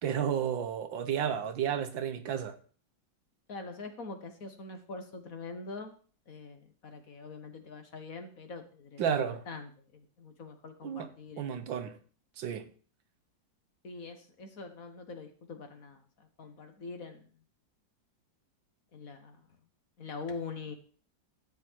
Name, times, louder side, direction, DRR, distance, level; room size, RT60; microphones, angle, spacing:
voice 1, 0.0-2.6 9.0-9.4 10.8-11.1 11.4-12.0 12.4-12.7, right 8 dB, 85° right, 1.8 m, -32 dB
voice 2, 3.5-6.0 6.3-11.5 13.8-17.3 18.9-19.4 20.0-20.8, left 4 dB, 50° left, 1.7 m, -44 dB
12.5 x 8.3 x 4.6 m
omnidirectional pair, 2.0 m